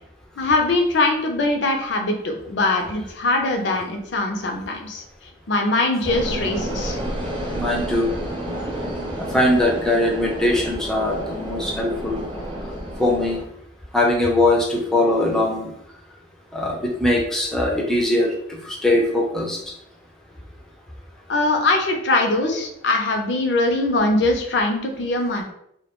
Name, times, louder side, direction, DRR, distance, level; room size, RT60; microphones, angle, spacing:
voice 1, 0.4-5.0 5.5-7.0 21.3-25.4, left 2 dB, 70° left, 3 dB, 0.5 m, -22 dB
sound 1, 6.0-13.4, equal, 25° right, 0.7 m, -30 dB
voice 2, 7.5-8.1 9.3-12.2 13.0-13.4 13.9-15.7 16.5-19.6, left 1 dB, 5° left, -2 dB, 0.4 m, -21 dB
2.2 x 2.1 x 2.9 m, 0.74 s
head